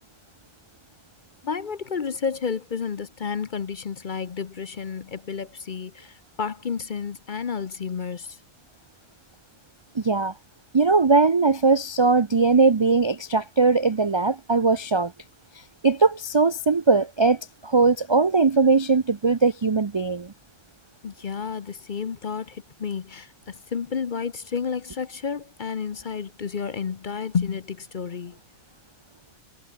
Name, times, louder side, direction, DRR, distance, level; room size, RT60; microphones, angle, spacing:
voice 1, 1.4-8.4 21.0-28.4, left 6 dB, 45° left, 0.8 m, -31 dB
voice 2, 10.0-10.3 10.7-15.1 15.8-20.3, right 4 dB, 45° right, 0.3 m, -20 dB
omnidirectional pair, 1.4 m